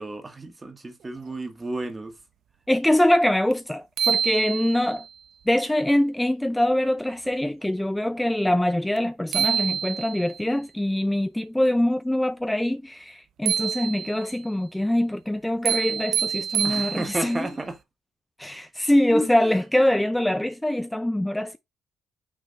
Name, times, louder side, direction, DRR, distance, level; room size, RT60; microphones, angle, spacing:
voice 1, 0.0-2.1 16.6-17.8 19.1-19.5, right 2 dB, 25° right, 1.6 m, -32 dB
voice 2, 2.7-5.0 5.5-17.4 18.4-21.6, left 1 dB, 5° left, 0.4 m, -23 dB
sound 1, 3.5-3.6 4.0-5.1 9.0-9.1 9.3-10.4 13.5-14.4 15.6-17.4, right 9 dB, 75° right, 0.6 m, -27 dB
6.2 x 3.3 x 5.2 m
cardioid pair, 90°, 0 cm